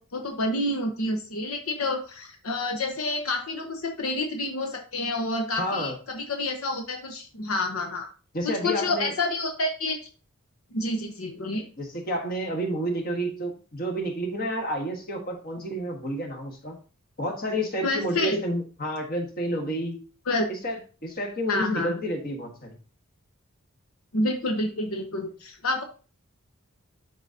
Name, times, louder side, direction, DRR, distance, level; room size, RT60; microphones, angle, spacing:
voice 1, 0.0-8.1 8.6-10.0 10.7-11.7 17.8-18.4 20.3-20.5 21.5-21.9 24.1-25.8, left 2 dB, 80° left, 4 dB, 1.0 m, -28 dB
voice 2, 5.6-6.0 8.3-9.1 11.8-16.8 17.2-20.0 20.5-22.7, equal, 45° left, 2 dB, 1.5 m, -30 dB
11.5 x 3.9 x 2.8 m, 0.37 s
head